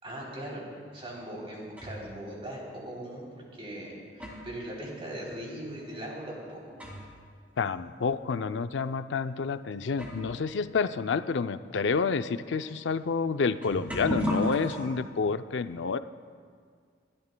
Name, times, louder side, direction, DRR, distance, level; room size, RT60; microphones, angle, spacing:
voice 1, 0.0-3.2 3.6-6.8, right 1 dB, 35° right, -3 dB, 3.4 m, -40 dB
sound 1, 1.1-2.2 3.1-3.2 3.8-7.3 7.6-7.7 8.5-8.6 9.5-9.6 9.9-14.8, equal, 10° right, 2.5 m, -37 dB
voice 2, 7.6-16.0, left 5 dB, 85° left, 11 dB, 0.5 m, -29 dB
28.5 x 13.0 x 2.3 m, 2.1 s
head